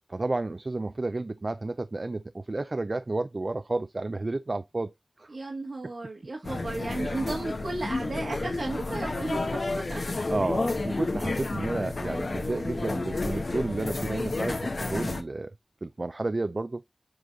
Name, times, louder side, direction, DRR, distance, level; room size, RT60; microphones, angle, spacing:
voice 1, 0.1-5.3 10.3-15.5 15.8-16.8, right 2 dB, 50° right, 0.4 m, -31 dB
voice 2, 5.3-10.0, right 2 dB, 80° right, 1.9 m, -34 dB
sound 1, 6.4-15.2, left 2 dB, 70° left, 1.1 m, -31 dB
7.7 x 3.9 x 3.7 m
wide cardioid pair, 70°, 0 cm